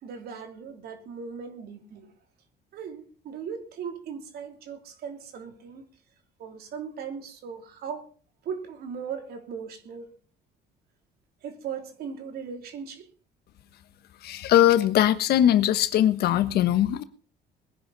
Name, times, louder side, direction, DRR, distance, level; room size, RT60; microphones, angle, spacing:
voice 1, 0.0-2.1 2.7-5.8 6.4-8.1 8.4-10.2 11.4-13.1, right 6 dB, 65° right, 3.2 m, -38 dB
voice 2, 14.2-17.0, left 11 dB, 70° left, 1.3 m, -21 dB
21.0 x 10.5 x 4.1 m
cardioid pair, 110°, 17 cm